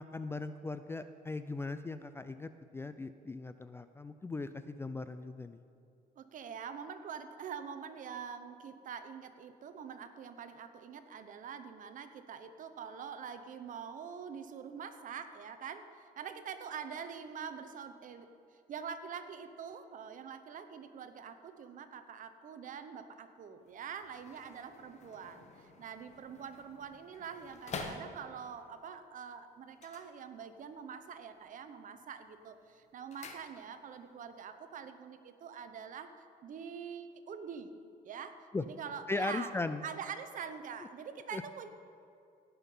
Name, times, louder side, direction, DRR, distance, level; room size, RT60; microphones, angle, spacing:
voice 1, 0.0-5.6 38.5-38.6 39.1-39.8 41.3-41.4, left 3 dB, 15° left, 11 dB, 0.3 m, -38 dB
voice 2, 6.2-18.3 18.7-36.1 36.4-37.7 38.0-39.5 39.8-41.7, right 7 dB, 50° right, 9 dB, 0.9 m, -45 dB
sound 1, 23.6-28.6 29.7-30.8 31.1-31.6 32.0-34.0 34.3-34.4, left 4 dB, 40° left, 1.1 m, -49 dB
17.5 x 5.8 x 5.5 m, 2.6 s
cardioid pair, 110°, 17 cm